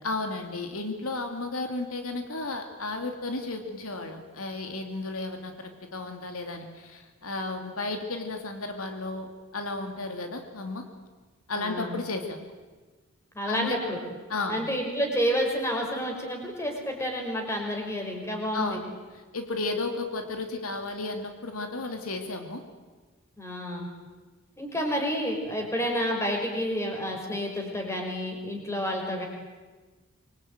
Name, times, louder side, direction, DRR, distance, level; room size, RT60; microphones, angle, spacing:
voice 1, 0.0-5.5 5.9-10.9 11.5-12.4 13.5-13.8 14.3-14.7 18.5-18.8 19.1-22.6, left 3 dB, 80° left, 5 dB, 2.9 m, -33 dB
voice 2, 11.5-11.9 13.3-14.0 14.5-18.8 23.4-23.9 24.6-29.3, equal, 15° left, 1 dB, 5.4 m, -29 dB
25.0 x 23.5 x 9.2 m, 1.3 s
head